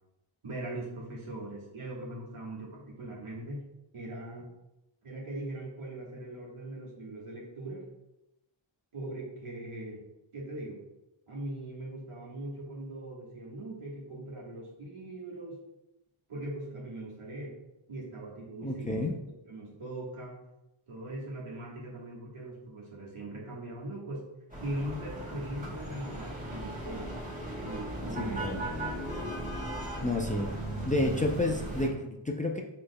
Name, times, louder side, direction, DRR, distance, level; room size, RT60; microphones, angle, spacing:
voice 1, 0.4-3.6 3.9-4.5 5.0-7.8 8.9-10.0 10.3-10.8 11.3-15.6 16.3-17.5 17.9-19.1 19.5-20.4 20.9-24.2 24.6-27.1 27.6-28.5, right 1 dB, 80° right, -4 dB, 1.5 m, -40 dB
voice 2, 18.6-19.1 28.2-28.7 30.0-30.5 30.9-32.6, left 2 dB, 15° left, 1 dB, 0.4 m, -30 dB
sound 1, 24.5-31.9, right 1 dB, 15° right, 1.4 m, -37 dB
6.3 x 3.3 x 2.2 m, 0.93 s
wide cardioid pair, 75°, 50 cm